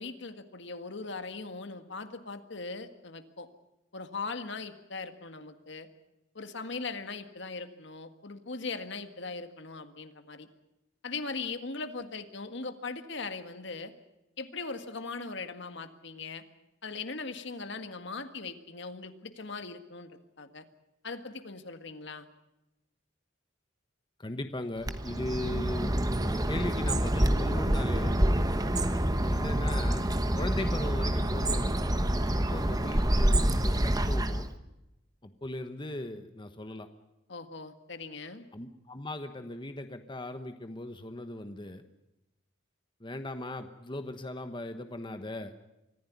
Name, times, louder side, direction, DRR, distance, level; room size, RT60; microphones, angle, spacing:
voice 1, 0.0-3.5 3.9-5.9 6.4-10.5 11.0-13.9 14.4-16.4 16.8-20.7 21.0-22.3 37.3-38.5, left 4 dB, 65° left, 9 dB, 1.7 m, -39 dB
voice 2, 24.2-26.0 26.2-28.2 29.2-30.0 30.3-31.8 32.2-34.5 35.2-36.9 38.5-41.8 43.0-45.5, left 1 dB, 25° left, 8 dB, 1.1 m, -38 dB
Bird, 24.8-34.5, right 1 dB, 20° right, 1.2 m, -27 dB
24.5 x 15.0 x 9.4 m, 0.96 s
head